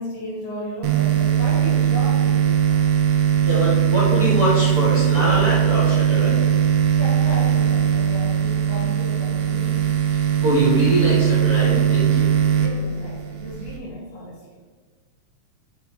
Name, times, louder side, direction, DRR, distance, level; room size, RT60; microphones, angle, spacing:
voice 1, 0.0-2.8 6.9-9.9 12.6-14.4, equal, 85° left, -4 dB, 3.5 m, -34 dB
sound 1, 0.8-13.8, right 9 dB, 80° right, 2.0 m, -19 dB
voice 2, 3.4-6.5 10.4-12.3, right 1 dB, 55° right, -8 dB, 1.0 m, -23 dB
6.7 x 4.6 x 4.1 m, 1.4 s
omnidirectional pair, 3.7 m